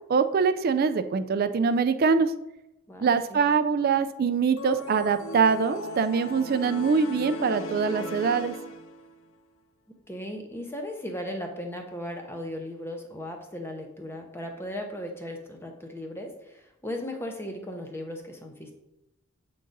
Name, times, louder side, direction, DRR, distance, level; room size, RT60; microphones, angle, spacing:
voice 1, 0.1-2.3 3.0-8.5, right 5 dB, 45° right, 11 dB, 0.3 m, -24 dB
voice 2, 2.9-3.4 10.1-18.7, left 1 dB, 10° left, 3 dB, 0.8 m, -37 dB
sound 1, 4.6-9.2, left 2 dB, 70° left, 0.5 m, -37 dB
7.9 x 3.7 x 3.9 m, 0.88 s
head